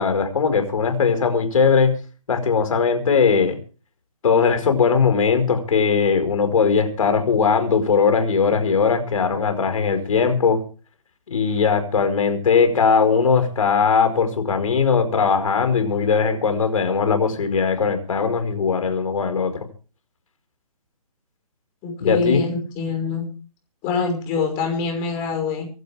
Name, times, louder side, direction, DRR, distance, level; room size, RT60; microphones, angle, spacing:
voice 1, 0.0-2.0 2.3-3.6 4.2-10.6 11.3-19.6 22.0-22.4, left 5 dB, 60° left, 8 dB, 5.1 m, -19 dB
voice 2, 21.8-23.3 23.8-25.7, left 4 dB, 20° left, 4 dB, 5.9 m, -25 dB
25.5 x 12.0 x 3.5 m, 0.37 s
hypercardioid pair, 160°, 19 cm